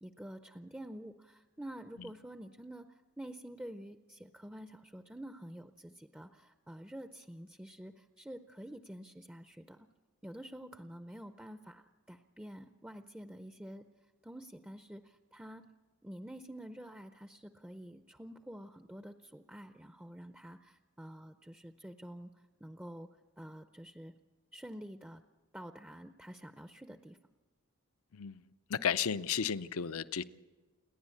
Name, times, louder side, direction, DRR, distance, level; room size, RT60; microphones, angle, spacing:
voice 1, 0.0-9.9 10.2-13.8 14.2-15.7 16.0-23.1 23.4-24.2 24.5-25.2 25.5-27.2, right 1 dB, 5° right, 0.5 m, -48 dB
voice 2, 28.7-30.2, left 7 dB, 75° left, 0.6 m, -33 dB
29.0 x 10.5 x 8.4 m
head